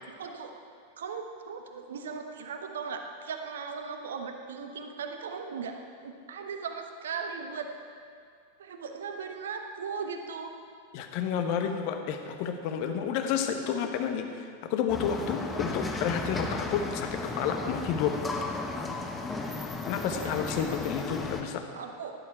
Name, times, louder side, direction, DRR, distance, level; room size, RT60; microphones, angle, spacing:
voice 1, 0.2-0.5 1.0-7.7 8.6-10.5 11.6-11.7 20.1-20.7 21.8-22.1, right 5 dB, 65° right, 5 dB, 1.0 m, -38 dB
voice 2, 10.9-18.2 19.9-21.6, left 7 dB, 45° left, 6 dB, 1.3 m, -30 dB
sound 1, 14.9-21.4, left 3 dB, 15° left, 1.3 m, -35 dB
16.0 x 11.0 x 4.7 m, 2.3 s
figure-of-eight pair, 90°, 0 cm